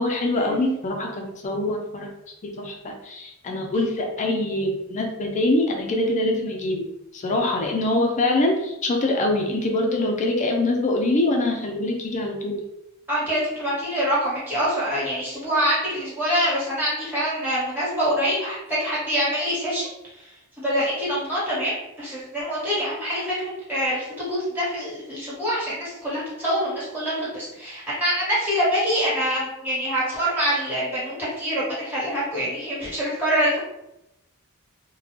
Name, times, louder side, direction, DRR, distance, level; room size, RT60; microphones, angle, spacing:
voice 1, 0.0-2.1 2.4-6.9 7.1-12.6, left 2 dB, 35° left, 2 dB, 0.4 m, -24 dB
voice 2, 13.1-19.9 20.6-21.7 22.0-23.3 23.7-33.6, equal, 10° right, -9 dB, 1.3 m, -25 dB
2.6 x 2.0 x 3.1 m, 0.87 s
head